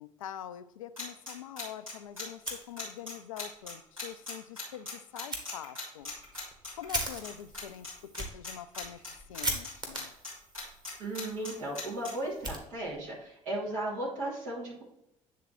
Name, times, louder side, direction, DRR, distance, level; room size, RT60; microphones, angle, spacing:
voice 1, 0.0-6.1 6.8-9.0 9.3-10.1, left 11 dB, 75° left, 12 dB, 0.4 m, -44 dB
sound 1, 1.0-7.3 7.5-7.9 8.1-9.7 9.9-12.1, left 4 dB, 90° right, 2.4 m, -39 dB
Fire, 2.4-3.2 3.6-3.7 4.1-4.2 5.3-5.4 6.0-13.2, right 1 dB, 25° right, 1.8 m, -40 dB
voice 2, 11.0-14.8, right 1 dB, 70° right, -6 dB, 2.8 m, -36 dB
9.2 x 3.7 x 4.4 m, 0.80 s
figure-of-eight pair, 55°, 17 cm